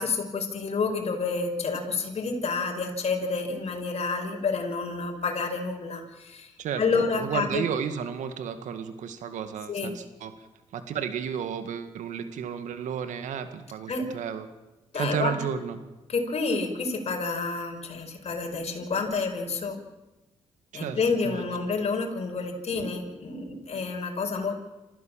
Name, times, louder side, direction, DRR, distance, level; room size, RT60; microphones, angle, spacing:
voice 1, 0.0-6.5 6.8-7.6 9.7-9.9 13.9-14.1 14.9-15.4 16.1-19.8 20.7-24.5, left 4 dB, 55° left, 2 dB, 5.5 m, -29 dB
voice 2, 6.6-10.3 10.7-14.5 15.0-15.8 20.7-21.0 21.2-21.5, right 8 dB, 80° right, 10 dB, 2.0 m, -32 dB
27.0 x 15.5 x 7.5 m, 1.0 s
supercardioid pair, 55°, 13 cm